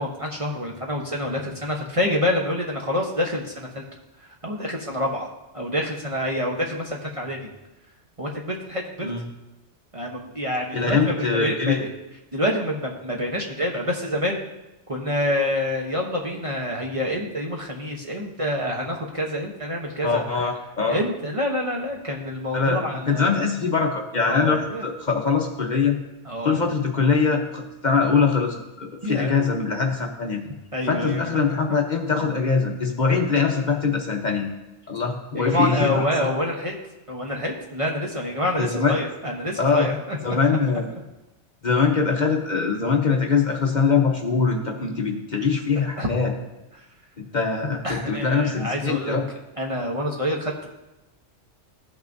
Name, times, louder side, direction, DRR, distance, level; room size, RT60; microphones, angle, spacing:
voice 1, 0.0-3.8 4.3-5.3 5.5-7.5 8.2-9.1 9.9-11.9 12.3-14.4 14.9-20.2 20.9-23.4 24.2-24.9 26.2-26.6 29.0-29.4 30.7-31.8 35.3-36.7 37.1-40.2 44.8-45.1 46.0-46.1 47.8-49.2 49.6-50.7, left 1 dB, 30° right, 0 dB, 0.9 m, -27 dB
voice 2, 10.7-11.8 20.0-21.0 22.5-26.0 26.4-30.4 30.9-34.5 34.9-36.1 38.6-39.0 39.6-39.9 40.2-40.9 41.6-46.3 47.2-49.2, left 5 dB, 40° left, 1 dB, 0.9 m, -22 dB
15.5 x 6.0 x 2.6 m, 0.98 s
omnidirectional pair, 1.2 m